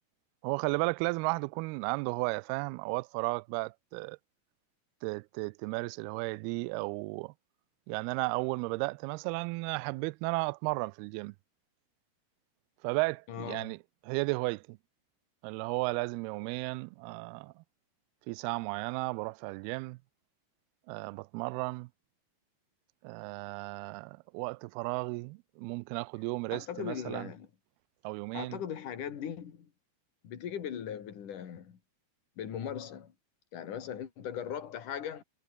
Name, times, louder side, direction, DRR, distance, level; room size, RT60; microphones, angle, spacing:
voice 1, 0.4-4.2 5.0-7.3 7.9-11.3 12.8-13.8 14.0-14.8 15.4-17.6 18.3-20.0 20.9-21.9 23.0-27.3 28.0-28.6, right 27 dB, 85° right, 2.3 m, -34 dB
voice 2, 13.3-13.7 26.5-27.5 28.3-29.7 30.2-31.8 32.4-33.1 33.5-35.2, left 9 dB, 50° left, 3.9 m, -39 dB
omnidirectional pair, 4.9 m